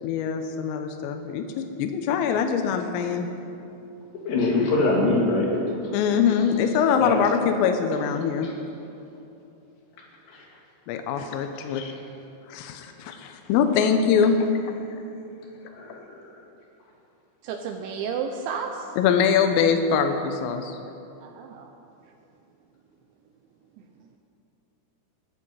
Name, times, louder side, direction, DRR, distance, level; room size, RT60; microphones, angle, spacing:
voice 1, 0.0-3.3 5.9-8.5 10.9-11.9 12.5-14.5 19.0-20.8, left 7 dB, 85° left, 6 dB, 3.6 m, -23 dB
voice 2, 4.2-5.5 5.8-5.9 7.0-7.2 8.4-8.5 10.3-10.5 11.7-12.0 15.7-16.4, left 2 dB, 60° left, -3 dB, 4.5 m, -24 dB
voice 3, 17.4-18.9 21.2-21.7, right 6 dB, 80° right, 4 dB, 2.8 m, -32 dB
21.5 x 11.0 x 5.6 m, 2.8 s
omnidirectional pair, 5.8 m